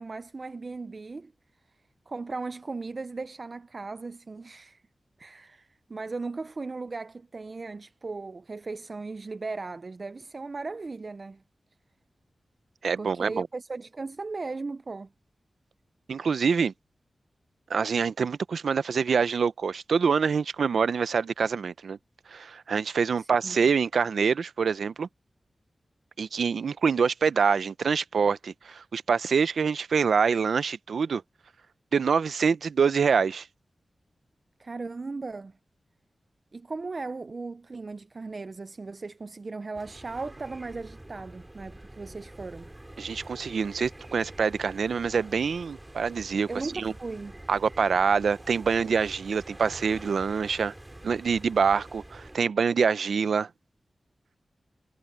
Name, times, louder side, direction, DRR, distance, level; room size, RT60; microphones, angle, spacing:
voice 1, 0.0-1.3 2.1-4.8 5.2-11.4 13.0-15.1 23.2-23.6 34.6-35.5 36.5-42.7 46.5-47.4, right 3 dB, 45° right, 0.5 m, -37 dB
voice 2, 12.8-13.5 16.1-16.7 17.7-22.0 22.3-25.1 26.2-31.2 31.9-33.5 43.0-46.5 46.7-46.9 47.5-50.7 51.0-53.5, right 6 dB, 90° right, 0.6 m, -25 dB
sound 1, 39.7-52.4, right 1 dB, 15° right, 3.8 m, -46 dB
wide cardioid pair, 100°, 0 cm